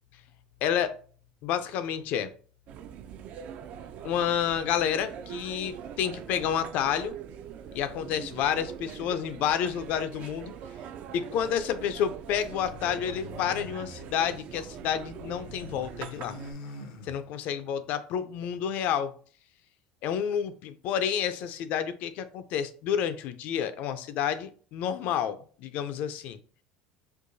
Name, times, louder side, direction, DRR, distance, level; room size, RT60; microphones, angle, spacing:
voice 1, 0.6-1.0 1.4-2.3 4.0-7.2 7.7-10.5 11.1-16.4 17.0-19.1 20.0-26.4, left 9 dB, 55° left, 12 dB, 0.4 m, -29 dB
sound 1, 2.7-16.5, right 8 dB, 50° right, 0.3 m, -42 dB
sound 2, 12.3-14.8 15.1-17.6, left 2 dB, 90° left, 0.7 m, -45 dB
4.5 x 2.3 x 2.6 m, 0.42 s
cardioid pair, 135°, 3 cm